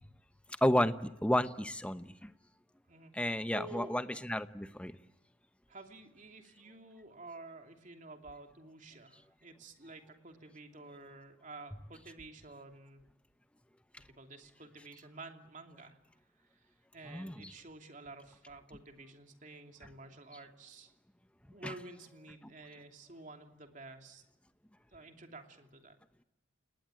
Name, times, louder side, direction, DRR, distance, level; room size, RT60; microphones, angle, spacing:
voice 1, 0.6-2.3 3.1-4.9 17.1-17.5 21.6-21.7, left 1 dB, 5° left, 11 dB, 0.9 m, -32 dB
voice 2, 2.9-4.0 5.7-13.0 14.1-16.0 16.4-21.0 21.5-24.2 24.9-26.0, right 2 dB, 40° right, 5 dB, 2.9 m, -51 dB
29.0 x 19.5 x 9.0 m, 0.91 s
head